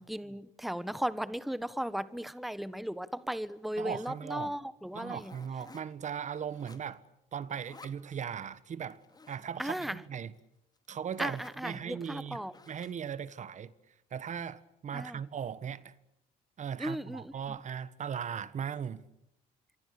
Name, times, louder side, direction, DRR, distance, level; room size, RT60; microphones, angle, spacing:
voice 1, 0.0-5.3 9.6-10.0 11.2-12.5 14.9-15.2 16.8-17.3, equal, ahead, 1.2 m, -36 dB
voice 2, 3.8-4.5 4.9-7.0 7.3-9.0 9.3-10.3 10.9-12.4 12.7-13.7 14.1-15.9 16.6-19.0, right 8 dB, 45° right, 1.4 m, -38 dB
sound 1, 5.1-6.1 6.4-7.1 7.4-8.0 8.9-9.5 10.4-10.5 10.8-10.9 11.1-11.6 12.5-13.1, left 3 dB, 25° left, 2.7 m, -54 dB
27.0 x 24.0 x 8.4 m
supercardioid pair, 80°, 17 cm